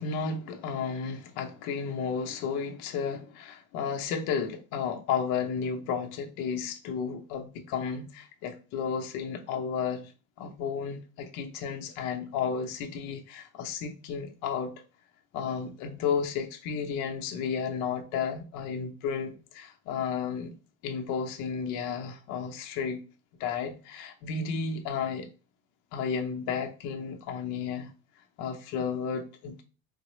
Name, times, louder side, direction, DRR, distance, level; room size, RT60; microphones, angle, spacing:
voice 1, 0.0-10.1 10.4-14.7 15.3-20.5 20.8-23.0 23.4-25.3 25.9-27.9 28.4-29.6, left 6 dB, 50° left, 0.7 m, -33 dB
4.0 x 2.0 x 3.0 m
cardioid pair, 165°, 41 cm